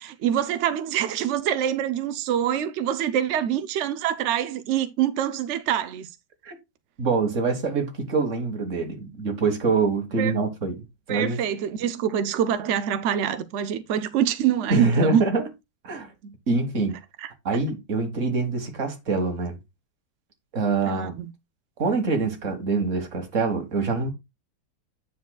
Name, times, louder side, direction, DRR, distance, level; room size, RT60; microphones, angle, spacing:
voice 1, 0.0-6.1 10.2-10.3 11.1-15.2 16.2-16.3 17.2-17.3 20.9-21.3, right 9 dB, 75° right, 0.6 m, -25 dB
voice 2, 7.0-10.8 11.1-11.4 14.7-15.5 15.8-16.1 16.5-17.0 17.5-19.6 20.5-21.2 21.8-24.1, right 4 dB, 45° right, 1.9 m, -25 dB
9.4 x 6.4 x 2.3 m
omnidirectional pair, 1.9 m